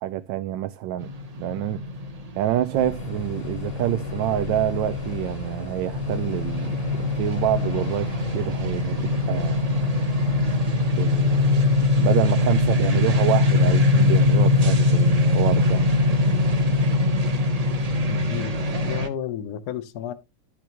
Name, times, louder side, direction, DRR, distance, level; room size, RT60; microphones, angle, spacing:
voice 1, 0.0-1.1 1.4-1.8 2.4-6.7 7.2-10.0 11.0-11.7 12.0-15.8, right 13 dB, 80° right, 1.3 m, -27 dB
sound 1, 1.0-19.1, left 2 dB, 35° right, 0.6 m, -22 dB
sound 2, 2.8-16.9, left 8 dB, 90° left, 0.5 m, -39 dB
voice 2, 18.1-20.1, left 9 dB, 60° left, 1.3 m, -32 dB
11.5 x 5.9 x 2.9 m
omnidirectional pair, 2.0 m